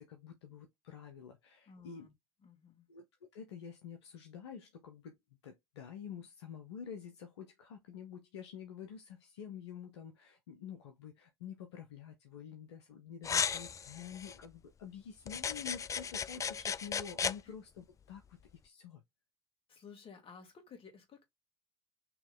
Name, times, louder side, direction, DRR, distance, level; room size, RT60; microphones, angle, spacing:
voice 1, 0.0-2.1 2.9-5.2 5.4-18.4 18.6-19.0, left 7 dB, 80° left, 0.7 m, -48 dB
voice 2, 1.7-2.1 2.4-2.9 17.4-17.5 19.7-21.2, left 6 dB, 40° left, 2.1 m, -55 dB
sound 1, 13.2-14.4 15.3-17.4, left 7 dB, 25° left, 0.3 m, -35 dB
4.7 x 3.0 x 3.7 m
hypercardioid pair, 60°, 14 cm